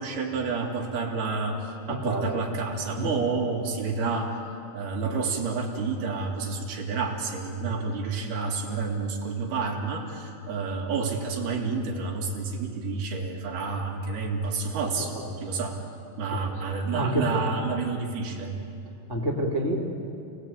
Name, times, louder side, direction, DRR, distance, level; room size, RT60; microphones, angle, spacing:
voice 1, 0.0-4.4 4.7-15.8 16.2-18.6, right 4 dB, 60° right, 0 dB, 3.9 m, -29 dB
voice 2, 1.9-2.4 3.0-3.2 14.8-15.3 16.2-16.4 16.9-17.3 18.8-19.8, equal, 15° left, -1 dB, 0.8 m, -29 dB
29.5 x 19.0 x 8.7 m, 2.6 s
omnidirectional pair, 5.6 m